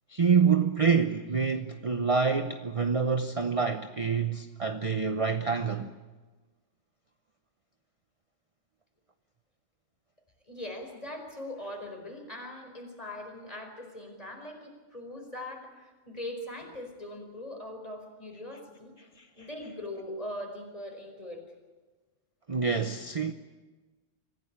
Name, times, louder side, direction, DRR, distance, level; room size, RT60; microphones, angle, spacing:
voice 1, 0.1-5.9 19.2-19.5 22.5-23.3, right 5 dB, 30° right, 0.8 m, -27 dB
voice 2, 10.5-18.9 19.3-21.4, left 1 dB, 30° left, 4.8 m, -41 dB
25.5 x 16.0 x 8.8 m
omnidirectional pair, 1.3 m